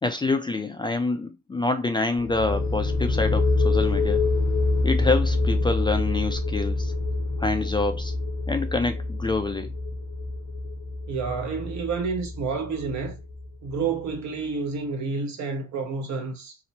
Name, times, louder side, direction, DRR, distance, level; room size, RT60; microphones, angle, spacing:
voice 1, 0.0-4.2 4.8-6.9 7.4-8.1 8.5-9.7, left 3 dB, 15° left, 0.3 m, -26 dB
sound 1, 2.2-13.7, left 2 dB, 70° left, 0.6 m, -26 dB
voice 2, 11.1-13.2 13.6-16.6, right 4 dB, 70° right, 1.0 m, -29 dB
2.9 x 2.1 x 2.6 m
cardioid pair, 90°, 30 cm